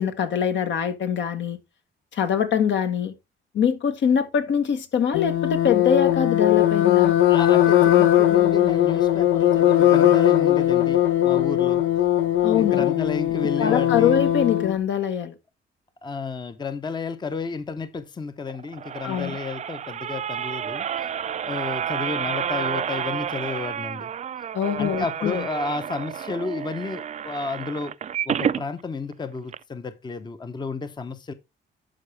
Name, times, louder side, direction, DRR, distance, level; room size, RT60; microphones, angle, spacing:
voice 1, 0.0-1.6 2.1-3.1 3.5-7.1 12.4-12.9 13.6-15.3 19.0-19.4 24.5-25.5, left 8 dB, 70° left, 1.3 m, -23 dB
sound 1, 5.1-14.8, left 12 dB, 85° left, 0.8 m, -19 dB
voice 2, 7.3-11.9 12.5-14.1 16.0-20.9 21.4-24.1 24.8-27.9 28.3-31.3, left 4 dB, 20° left, 0.7 m, -32 dB
sound 2, 18.5-28.6 29.1-29.2 29.5-29.6, right 8 dB, 35° right, 0.4 m, -30 dB
11.5 x 4.7 x 3.2 m
cardioid pair, 90°, 20 cm